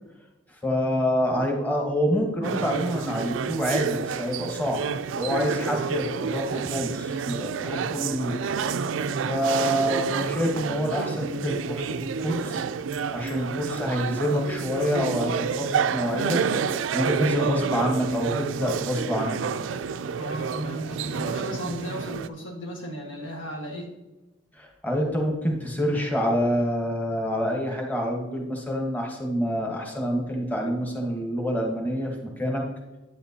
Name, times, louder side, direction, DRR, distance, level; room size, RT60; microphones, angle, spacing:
voice 1, 0.6-4.8 5.1-8.4 9.2-11.8 12.2-12.6 13.1-16.4 16.9-19.4 24.6-32.6, equal, 10° left, 0 dB, 1.2 m, -27 dB
sound 1, 2.4-22.3, right 6 dB, 85° right, 0.4 m, -29 dB
voice 2, 20.2-24.0, equal, 85° left, 1 dB, 1.6 m, -35 dB
9.1 x 8.7 x 2.8 m, 1.1 s
head